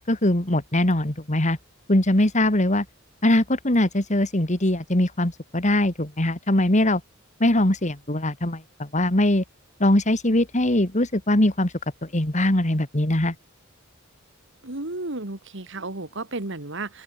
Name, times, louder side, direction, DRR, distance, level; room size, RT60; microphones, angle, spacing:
voice 1, 0.1-1.6 1.9-2.9 3.2-7.0 7.4-9.4 9.8-11.7 12.0-13.4, left 1 dB, 35° left, 2.3 m, -21 dB
voice 2, 14.6-17.0, right 2 dB, 60° right, 2.2 m, -33 dB
open air
head